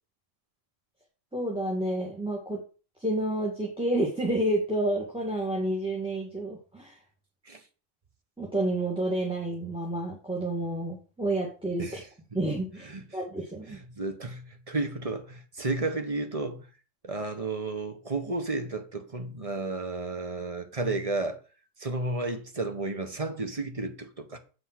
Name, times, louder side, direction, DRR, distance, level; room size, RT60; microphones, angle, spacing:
voice 1, 1.3-2.6 3.0-7.0 8.4-12.0 12.3-13.8, right 1 dB, 5° right, 1.9 m, -29 dB
voice 2, 13.7-16.7 17.0-21.4 21.8-24.4, right 2 dB, 25° right, 1.2 m, -32 dB
7.9 x 5.5 x 5.9 m
omnidirectional pair, 1.4 m